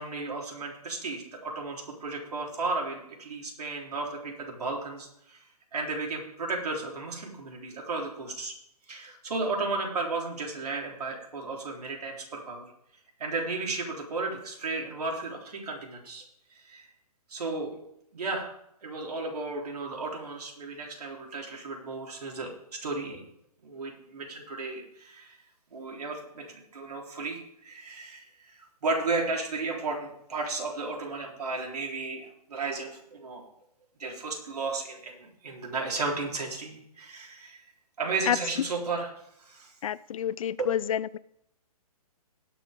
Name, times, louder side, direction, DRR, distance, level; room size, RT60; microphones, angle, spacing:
voice 1, 0.0-5.4 5.7-8.5 8.9-12.6 13.2-16.2 16.7-16.9 17.3-17.7 18.1-18.5 18.8-22.5 22.8-23.2 23.6-25.4 25.7-33.4 34.0-37.6 38.0-39.1 39.4-39.7 40.6-40.7, right 3 dB, 75° right, 3.9 m, -34 dB
voice 2, 39.8-41.2, left 10 dB, 60° left, 0.5 m, -28 dB
20.0 x 6.8 x 3.7 m
hypercardioid pair, 150°, 20 cm